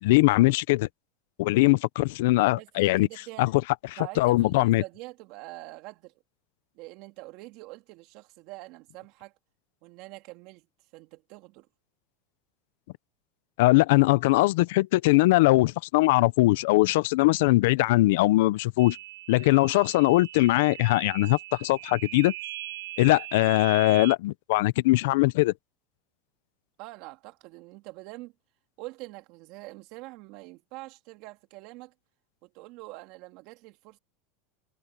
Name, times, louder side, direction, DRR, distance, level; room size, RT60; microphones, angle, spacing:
voice 1, 0.0-0.9 1.4-3.1 3.4-3.5 4.2-4.8 13.6-19.0 19.3-22.3 23.0-25.5, left 19 dB, 70° left, 0.7 m, -21 dB
voice 2, 2.5-3.5 4.0-6.1 6.7-9.3 9.8-10.7 10.9-11.7 26.8-28.3 28.8-31.9 32.4-34.0, right 21 dB, 55° right, 2.8 m, -44 dB
sound 1, 18.8-24.2, right 17 dB, 85° right, 3.7 m, -40 dB
supercardioid pair, 140°, 0 cm